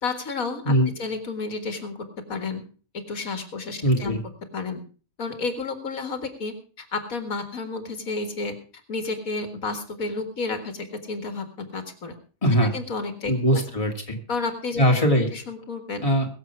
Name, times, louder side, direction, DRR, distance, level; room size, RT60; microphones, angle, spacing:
voice 1, 0.0-0.7 1.0-2.0 2.3-2.6 2.9-4.2 4.5-4.8 5.2-8.5 8.9-12.2 12.7-13.6 14.3-14.8 15.3-16.0, left 3 dB, 85° left, 7 dB, 2.3 m, -31 dB
voice 2, 3.8-4.2 12.4-12.7 13.3-14.2 14.8-15.3 16.0-16.3, equal, 25° left, 1 dB, 2.6 m, -21 dB
22.0 x 7.4 x 4.6 m, 0.39 s
omnidirectional pair, 1.4 m